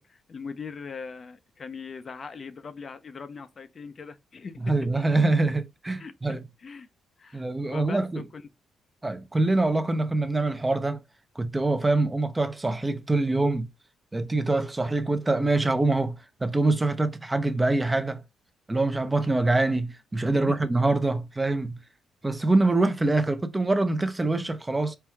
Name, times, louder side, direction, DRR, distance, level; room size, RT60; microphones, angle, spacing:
voice 1, 0.0-5.0 6.0-6.9 7.2-8.4 20.3-20.6, left 5 dB, 40° left, 0.5 m, -40 dB
voice 2, 4.6-6.4 7.3-8.3 9.0-11.0 11.4-13.7 14.1-18.2 18.7-21.8 22.2-25.0, right 2 dB, 15° right, 0.5 m, -24 dB
4.5 x 2.3 x 3.4 m
cardioid pair, 90°, 0 cm